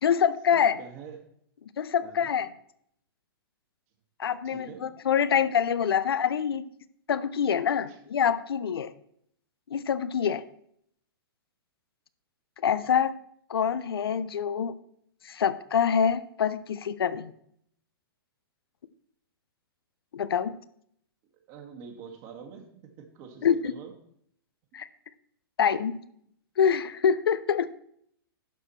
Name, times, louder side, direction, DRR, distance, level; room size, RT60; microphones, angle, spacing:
voice 1, 0.0-0.8 1.8-2.5 4.2-6.6 7.1-8.9 9.7-10.4 12.6-13.1 13.5-14.7 15.2-17.3 20.1-20.6 23.4-23.7 24.7-24.9 25.6-26.0 26.6-27.7, left 7 dB, 75° left, 14 dB, 0.6 m, -25 dB
voice 2, 0.5-1.2 2.0-2.4 4.4-4.9 7.9-8.0 21.5-23.9, right 6 dB, 40° right, 3 dB, 1.9 m, -45 dB
11.5 x 5.0 x 4.4 m, 0.68 s
hypercardioid pair, 120°, 13 cm